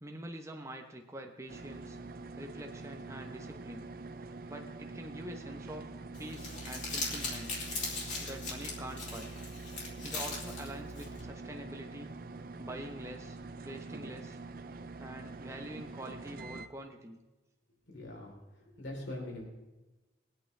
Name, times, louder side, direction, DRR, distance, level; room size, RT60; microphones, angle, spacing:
voice 1, 0.0-2.0 2.4-3.9 4.5-5.9 6.2-7.5 8.2-9.3 10.0-12.1 12.6-13.4 13.6-14.4 15.0-17.2, right 1 dB, 15° right, 3 dB, 1.0 m, -45 dB
sound 1, 1.5-16.7, right 3 dB, 50° right, 0.6 m, -45 dB
Crumpling crinkling, 6.1-11.2, left 3 dB, 40° left, 3.0 m, -39 dB
voice 2, 17.9-19.4, left 1 dB, 80° left, -2 dB, 3.8 m, -43 dB
21.5 x 8.9 x 3.3 m, 1.1 s
head